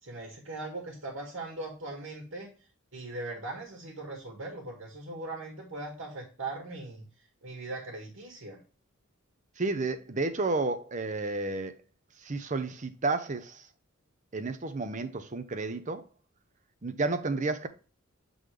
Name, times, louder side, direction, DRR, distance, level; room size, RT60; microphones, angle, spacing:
voice 1, 0.0-2.5 2.9-7.0 7.4-8.6, right 2 dB, 65° right, 1.7 m, -39 dB
voice 2, 9.6-11.7 12.2-13.7 14.3-16.1 16.8-17.7, right 3 dB, 35° right, 0.7 m, -31 dB
7.7 x 3.9 x 3.3 m
head